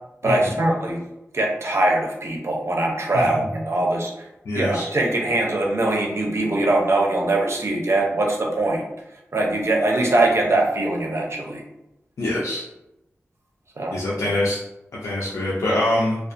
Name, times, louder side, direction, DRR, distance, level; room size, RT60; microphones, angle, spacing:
voice 1, 0.2-1.0 1.3-4.3 4.5-8.8 9.3-11.6 13.8-14.0, right 2 dB, 60° right, -1 dB, 0.6 m, -22 dB
voice 2, 4.5-4.9 12.2-12.6 13.9-14.6 14.9-16.2, left 1 dB, 90° left, -5 dB, 0.4 m, -24 dB
2.4 x 2.3 x 2.5 m, 0.91 s
cardioid pair, 50°, 5 cm